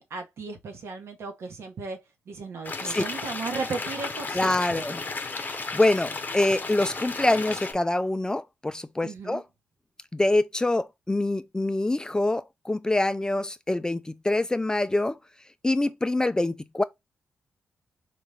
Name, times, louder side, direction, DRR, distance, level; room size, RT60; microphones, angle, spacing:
voice 1, 0.0-2.0 2.3-4.8 9.0-9.4, right 4 dB, 75° right, 0.9 m, -36 dB
sound 1, 2.6-7.7, left 4 dB, 40° left, 0.7 m, -34 dB
voice 2, 4.3-5.0 5.3-9.4 10.1-15.2 15.6-16.8, left 2 dB, 15° left, 0.3 m, -25 dB
4.1 x 2.3 x 3.2 m
cardioid pair, 60°, 5 cm